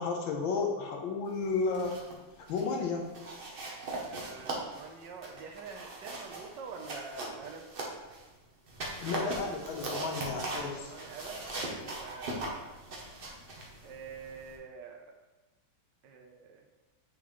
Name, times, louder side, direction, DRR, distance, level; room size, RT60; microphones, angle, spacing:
voice 1, 0.0-2.0 2.5-3.0 9.0-10.9, left 4 dB, 90° left, 2 dB, 1.5 m, -32 dB
sound 1, 1.5-2.2 2.5-2.7 3.1-8.3 8.7-14.6, right 2 dB, 45° right, 0.7 m, -40 dB
voice 2, 4.0-7.6 10.8-12.8 13.8-15.1 16.0-16.7, right 5 dB, 70° right, 3 dB, 1.3 m, -46 dB
8.4 x 3.8 x 3.0 m, 1.1 s
omnidirectional pair, 2.1 m